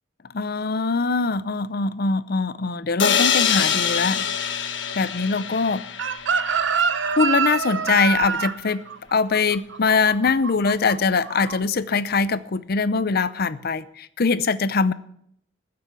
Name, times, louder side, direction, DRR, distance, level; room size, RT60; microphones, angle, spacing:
voice 1, 0.3-4.3 5.0-5.8 7.2-8.8 9.1-14.9, left 4 dB, 55° left, 15 dB, 0.6 m, -22 dB
sound 1, 3.0-6.8, left 7 dB, 70° left, 1.2 m, -24 dB
Chicken rooster, 6.0-10.9 11.2-11.6, right 6 dB, 70° right, 0.8 m, -25 dB
14.5 x 7.7 x 6.9 m, 0.70 s
head